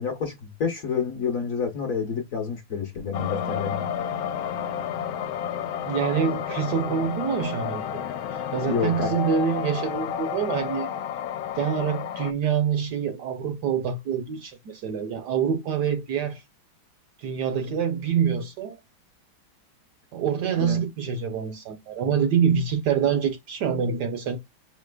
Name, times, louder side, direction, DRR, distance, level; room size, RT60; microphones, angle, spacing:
voice 1, 0.0-3.9 8.7-9.1 20.6-20.8, left 6 dB, 55° left, 1.0 m, -29 dB
sound 1, 3.1-12.3, left 9 dB, 80° left, 1.3 m, -31 dB
voice 2, 5.9-8.0 8.5-10.9 11.6-16.4 17.2-18.8 20.1-24.4, right 7 dB, 65° right, 1.1 m, -26 dB
5.5 x 3.2 x 2.2 m
omnidirectional pair, 2.2 m